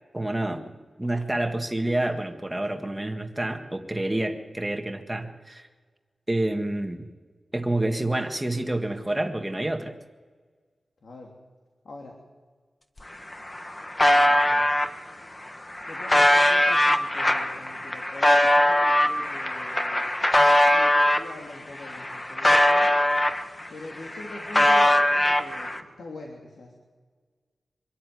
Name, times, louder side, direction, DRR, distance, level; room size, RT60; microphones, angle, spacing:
voice 1, 0.1-0.6 1.0-5.7 6.3-7.1 7.5-9.9, right 1 dB, 10° right, 5 dB, 1.7 m, -28 dB
voice 2, 11.0-11.3 11.8-12.2 14.1-14.7 15.9-20.1 20.5-22.9 23.7-26.7, left 2 dB, 80° left, 0 dB, 3.1 m, -43 dB
sound 1, 13.0-13.1 13.3-14.9 15.5-21.3 21.7-23.7 24.0-25.8, left 1 dB, 20° left, 1.3 m, -21 dB
24.5 x 13.5 x 9.5 m, 1.5 s
wide cardioid pair, 140°, 0 cm